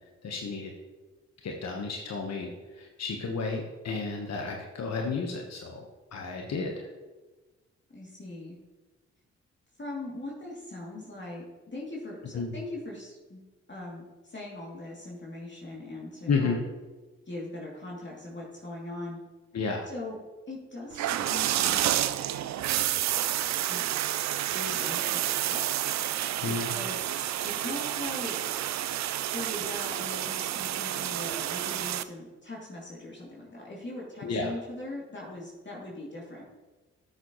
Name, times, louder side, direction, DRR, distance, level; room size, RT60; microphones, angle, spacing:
voice 1, 0.2-0.7 1.4-5.8 6.1-6.9 12.3-12.5 16.3-16.6 19.5-19.8 26.4-26.7 34.2-34.5, left 4 dB, 55° left, 1 dB, 1.2 m, -32 dB
voice 2, 7.9-8.6 9.8-13.4 13.7-16.5 17.3-19.2 19.9-20.2 20.5-21.9 23.6-23.8 24.3-25.8 26.5-28.6 29.2-36.4, left 2 dB, 35° left, -4 dB, 2.7 m, -40 dB
sound 1, 20.9-32.0, right 12 dB, 60° right, 0.5 m, -29 dB
12.0 x 6.8 x 3.1 m, 1.2 s
hypercardioid pair, 40°, 31 cm